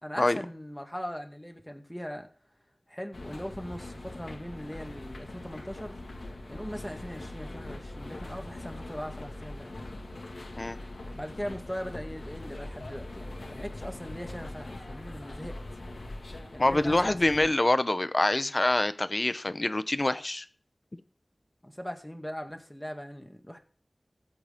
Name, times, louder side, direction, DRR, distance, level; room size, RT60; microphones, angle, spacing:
voice 1, 0.0-2.3 2.9-6.0 6.5-9.7 11.1-15.6 16.5-17.5 19.5-19.6 21.6-23.6, equal, 5° left, 1.9 m, -40 dB
sound 1, 3.1-17.5, left 1 dB, 85° left, 2.2 m, -42 dB
voice 2, 16.6-20.4, left 2 dB, 40° left, 0.8 m, -25 dB
19.0 x 7.9 x 3.7 m
wide cardioid pair, 65°, 0 cm